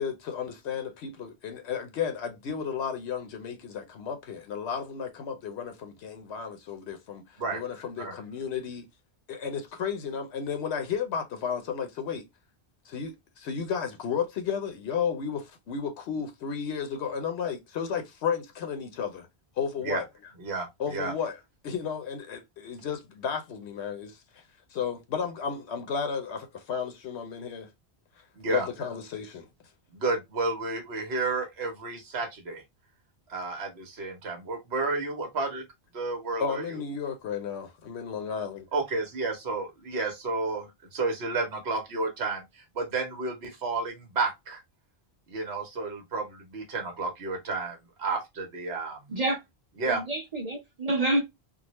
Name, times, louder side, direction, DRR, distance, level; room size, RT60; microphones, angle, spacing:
voice 1, 0.0-8.9 9.3-12.3 12.9-19.3 19.6-20.0 20.8-24.4 24.7-27.7 28.5-29.5 36.4-38.7, left 7 dB, 90° left, 1.0 m, -33 dB
voice 2, 20.4-21.1 28.4-28.7 29.9-32.6 33.3-35.6 35.9-36.6 38.7-42.4 42.7-44.6 45.3-49.1 49.8-50.0, right 3 dB, 70° right, 1.2 m, -31 dB
voice 3, 49.8-51.2, right 1 dB, 40° right, 0.9 m, -28 dB
3.7 x 2.1 x 2.9 m
omnidirectional pair, 1.1 m